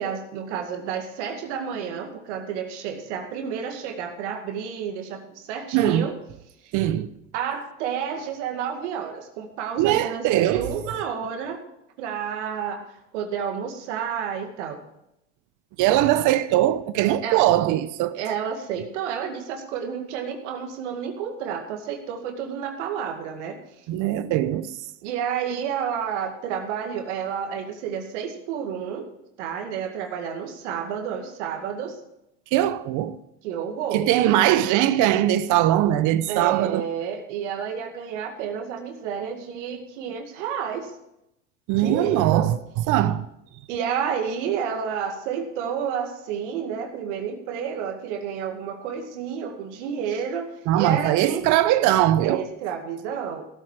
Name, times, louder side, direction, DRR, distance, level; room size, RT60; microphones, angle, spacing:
voice 1, 0.0-6.2 6.6-6.7 7.3-11.6 12.0-14.8 17.2-17.4 18.1-23.9 25.0-29.1 29.4-32.0 33.4-34.1 36.3-40.9 41.8-42.5 43.7-51.5 52.2-53.5, right 7 dB, 75° right, 2.2 m, -30 dB
voice 2, 5.7-6.1 6.7-7.1 9.8-10.7 15.8-18.2 23.9-24.7 32.5-33.2 33.9-36.8 41.7-42.6 42.9-43.3 50.7-52.4, right 13 dB, 55° right, 0.8 m, -21 dB
16.5 x 8.5 x 4.9 m
hypercardioid pair, 90°, 36 cm